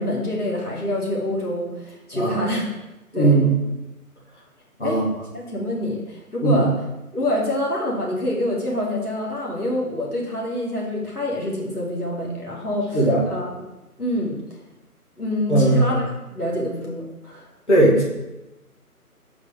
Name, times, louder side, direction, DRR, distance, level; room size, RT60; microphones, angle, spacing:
voice 1, 0.0-2.7 3.1-3.4 4.8-5.0 5.3-6.7 7.1-13.5 14.0-14.4 15.2-16.0 16.3-17.5, left 1 dB, 75° left, -3 dB, 2.3 m, -26 dB
voice 2, 3.1-3.5 4.8-5.0 6.4-6.6 12.9-13.2 15.5-16.0 17.7-18.0, right 2 dB, 45° left, -5 dB, 2.1 m, -17 dB
6.4 x 5.1 x 5.0 m, 0.99 s
figure-of-eight pair, 155°, 46 cm